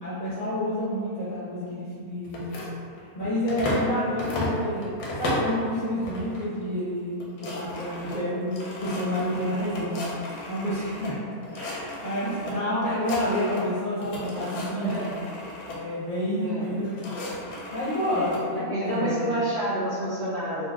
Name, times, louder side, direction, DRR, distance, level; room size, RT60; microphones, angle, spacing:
voice 1, 0.0-2.6 3.1-4.9 5.2-11.2 11.5-15.0 15.7-17.2 17.7-19.2, left 1 dB, 55° left, -12 dB, 0.5 m, -29 dB
sound 1, 2.3-3.9 4.2-5.6 6.0-6.5 6.8-6.9 7.1-11.1 11.4-12.5 12.8-13.7 14.0-15.8 16.6-18.4, left 1 dB, 80° left, 1.2 m, -34 dB
voice 2, 12.4-12.8 14.8-15.2 16.3-16.8 18.1-18.3 18.7-20.7, right 1 dB, 75° right, -9 dB, 0.6 m, -29 dB
3.9 x 2.1 x 2.3 m, 2.3 s
omnidirectional pair, 1.7 m